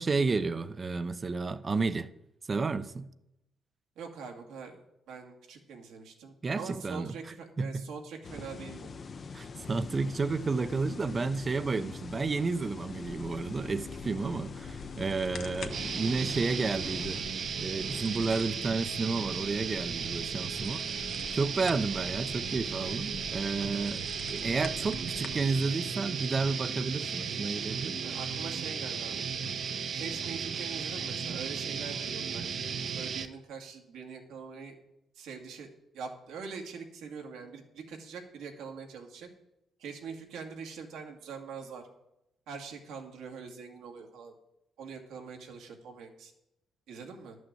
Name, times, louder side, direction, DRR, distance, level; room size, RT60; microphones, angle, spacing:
voice 1, 0.0-2.1 2.5-3.1 6.4-7.2 7.6-7.9 9.3-17.2 17.6-20.8 21.3-24.0 24.3-28.0, right 4 dB, 35° right, 0.6 m, -31 dB
voice 2, 4.0-4.8 5.1-8.9 28.0-29.3 29.9-34.8 35.1-35.7 35.9-39.3 39.8-41.9 42.5-44.3 44.8-46.3 46.9-47.4, right 5 dB, 85° right, 2.0 m, -43 dB
sound 1, 8.2-17.2, left 5 dB, 45° left, 0.7 m, -43 dB
sound 2, 12.9-25.4, left 5 dB, 65° left, 1.2 m, -47 dB
sound 3, 15.7-33.3, right 6 dB, 60° right, 0.9 m, -35 dB
11.0 x 6.3 x 7.6 m
cardioid pair, 90°, 0 cm